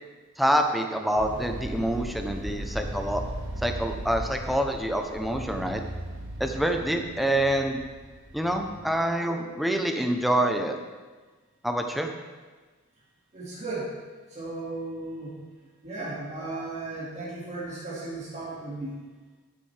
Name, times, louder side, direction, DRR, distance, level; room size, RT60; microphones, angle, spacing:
voice 1, 0.4-3.2 3.6-5.8 6.4-7.8 8.3-10.8 11.6-12.1, right 1 dB, ahead, 4 dB, 0.7 m, -26 dB
sound 1, 1.2-9.0, right 1 dB, 60° right, 1.6 m, -37 dB
voice 2, 13.3-14.0 14.3-15.4 15.8-19.0, right 2 dB, 30° right, -8 dB, 2.1 m, -35 dB
12.0 x 9.1 x 3.4 m, 1.3 s
head